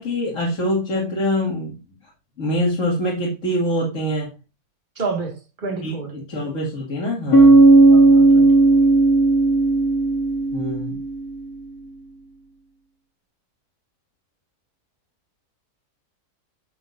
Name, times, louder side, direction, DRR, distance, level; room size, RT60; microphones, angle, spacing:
voice 1, 0.0-1.8 2.4-4.3 5.8-6.0 6.3-7.6 10.5-11.0, equal, 55° left, -4 dB, 2.6 m, -24 dB
voice 2, 5.0-6.1 7.9-8.8, right 4 dB, 30° right, 1 dB, 2.2 m, -30 dB
Bass guitar, 7.3-11.1, right 2 dB, 80° left, 2.0 m, -14 dB
11.0 x 6.9 x 2.6 m, 0.30 s
omnidirectional pair, 1.6 m